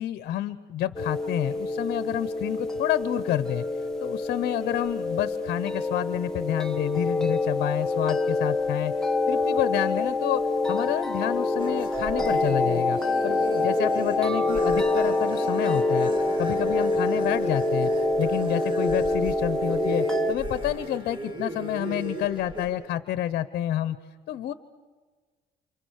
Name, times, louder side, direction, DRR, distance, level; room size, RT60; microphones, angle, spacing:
voice 1, 0.0-3.6 4.0-8.9 9.3-10.4 10.7-16.1 16.4-17.9 18.2-24.0 24.3-24.5, left 12 dB, 65° left, 14 dB, 0.9 m, -29 dB
sound 1, 0.9-20.3, left 2 dB, 5° left, 1.7 m, -26 dB
sound 2, 11.6-22.7, right 1 dB, 30° right, 5.4 m, -36 dB
29.5 x 28.0 x 6.5 m, 1.5 s
cardioid pair, 110°, 17 cm